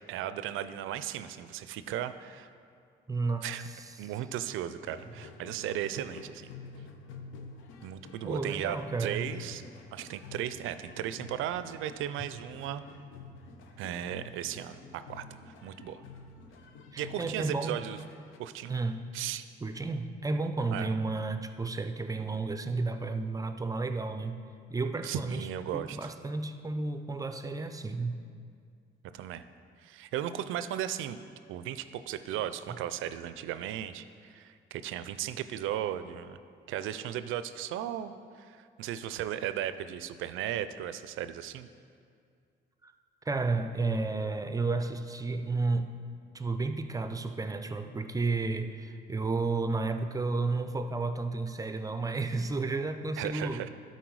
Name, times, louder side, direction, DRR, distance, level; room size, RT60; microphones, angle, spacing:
voice 1, 0.1-2.5 3.4-3.6 4.0-6.5 7.8-9.6 9.9-12.8 13.8-16.0 17.0-18.0 18.4-18.8 19.1-19.5 20.7-20.9 25.0-26.1 29.1-29.4 29.8-31.2 31.5-36.4 36.7-41.7 53.2-53.7, right 11 dB, 85° right, 12 dB, 0.4 m, -36 dB
voice 2, 3.1-3.5 3.7-3.9 8.2-9.2 16.9-17.9 18.7-19.1 19.6-24.4 24.7-25.5 25.7-28.2 42.8-42.9 43.3-46.0 46.3-53.6, right 3 dB, 15° right, 9 dB, 0.5 m, -32 dB
sound 1, 4.8-18.4, left 4 dB, 85° left, 0.7 m, -49 dB
12.5 x 4.2 x 4.7 m, 2.3 s
cardioid pair, 90°, 20 cm